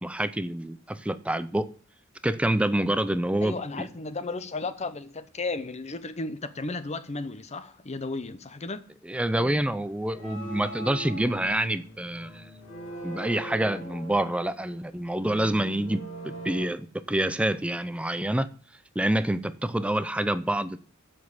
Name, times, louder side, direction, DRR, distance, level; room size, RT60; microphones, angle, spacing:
voice 1, 0.0-1.7 2.2-3.9 9.1-12.5 13.0-18.5 19.0-20.8, right 1 dB, 5° right, 0.5 m, -27 dB
voice 2, 3.4-8.9, left 3 dB, 35° left, 0.8 m, -34 dB
sound 1, 9.3-16.7, right 1 dB, 75° left, 2.5 m, -41 dB
7.7 x 6.2 x 7.1 m
head